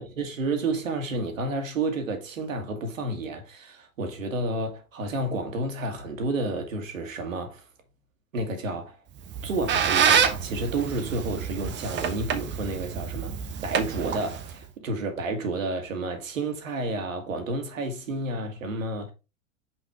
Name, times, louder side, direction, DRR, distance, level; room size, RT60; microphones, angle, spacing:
voice 1, 0.0-7.6 8.3-9.0 9.4-19.1, right 2 dB, 75° right, 1.8 m, -30 dB
Squeak, 9.2-14.6, right 7 dB, 30° right, 0.9 m, -27 dB
6.1 x 4.9 x 3.6 m
hypercardioid pair, 90°, 39 cm